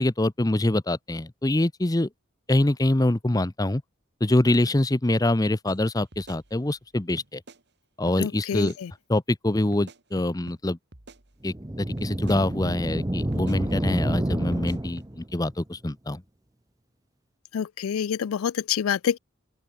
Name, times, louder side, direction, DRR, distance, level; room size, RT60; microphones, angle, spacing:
voice 1, 0.0-2.1 2.5-3.8 4.2-7.4 8.0-8.7 9.1-10.8 11.4-16.2, left 1 dB, 15° left, 0.7 m, -24 dB
sound 1, 5.7-5.8 6.1-6.9 7.2-7.6 8.1-8.2 8.5-8.8 9.7-10.6 10.9-11.7 12.0-12.4 12.9-13.0 13.3-13.6 14.5-15.1, right 1 dB, 55° right, 2.5 m, -47 dB
voice 2, 8.2-8.9 17.5-19.2, left 8 dB, 85° left, 0.4 m, -27 dB
sound 2, 11.5-15.3, right 1 dB, 15° right, 0.8 m, -29 dB
open air
head